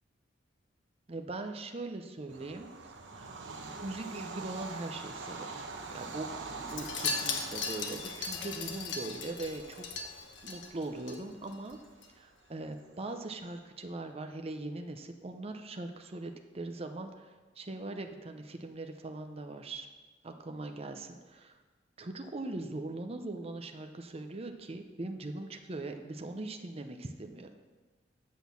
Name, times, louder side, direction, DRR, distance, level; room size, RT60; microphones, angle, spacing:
voice 1, 1.1-2.7 3.2-3.4 3.8-5.5 5.9-6.3 6.6-9.9 10.4-11.8 12.2-19.9 20.2-21.6 22.0-27.5, right 2 dB, 35° right, 6 dB, 0.7 m, -41 dB
Bird vocalization bird call bird song / Train, 2.3-13.5, right 3 dB, 75° right, 1.0 m, -45 dB
Wind chime, 6.7-11.2 11.5-11.8 12.0-12.1, left 5 dB, 75° left, 1.1 m, -37 dB
8.3 x 6.2 x 7.0 m, 1.3 s
head